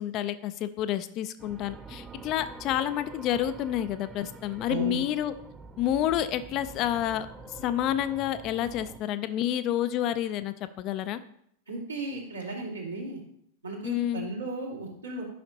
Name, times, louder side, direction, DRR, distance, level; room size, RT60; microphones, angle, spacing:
voice 1, 0.0-5.3 5.8-7.3 7.6-11.2 13.8-14.3, left 11 dB, 40° left, 12 dB, 0.5 m, -29 dB
sound 1, 1.4-9.0, right 4 dB, 15° right, 0.6 m, -46 dB
voice 2, 4.7-5.0 11.7-13.2 13.6-15.2, right 3 dB, 75° right, -2 dB, 2.2 m, -35 dB
10.5 x 5.9 x 2.8 m, 0.69 s
figure-of-eight pair, 90°, 0 cm